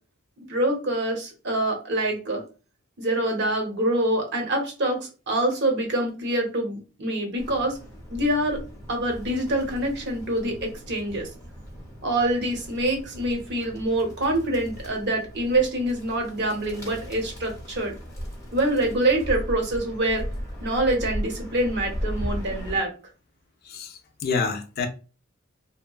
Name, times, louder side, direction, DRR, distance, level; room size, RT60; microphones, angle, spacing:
voice 1, 0.5-2.4 3.0-7.8 8.1-8.6 8.9-11.3 12.0-18.0 18.5-20.2 20.6-22.9, right 1 dB, 55° right, 0.8 m, -25 dB
Bird, 7.4-22.8, equal, 15° left, 0.7 m, -37 dB
voice 2, 23.7-24.9, left 5 dB, 50° left, 0.4 m, -28 dB
2.8 x 2.2 x 2.3 m
head